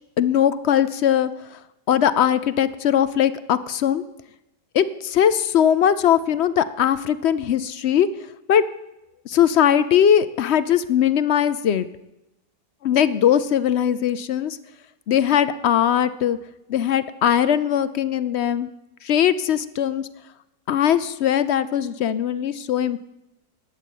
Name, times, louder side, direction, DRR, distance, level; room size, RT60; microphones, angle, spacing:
voice 1, 0.2-1.6 1.9-4.0 4.7-8.1 8.5-8.6 9.3-11.9 12.8-14.6 15.1-16.4 16.7-18.7 19.0-20.1 20.7-23.0, left 9 dB, 65° left, 14 dB, 0.7 m, -20 dB
12.0 x 8.4 x 9.1 m, 0.92 s
omnidirectional pair, 1.6 m